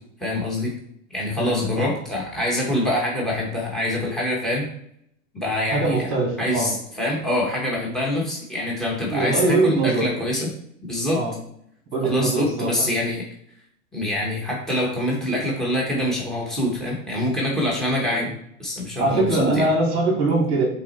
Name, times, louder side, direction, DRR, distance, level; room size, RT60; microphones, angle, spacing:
voice 1, 0.2-0.7 1.1-4.7 5.3-6.0 6.4-10.5 10.8-11.2 12.0-13.2 13.9-18.3 18.6-19.7, left 1 dB, ahead, -3 dB, 1.2 m, -25 dB
voice 2, 1.4-1.9 5.7-6.7 9.1-10.1 11.1-11.3 11.9-12.9 18.0-18.2 19.0-20.6, right 2 dB, 15° right, -2 dB, 2.6 m, -22 dB
7.3 x 4.1 x 4.2 m, 0.70 s
hypercardioid pair, 150°, 42 cm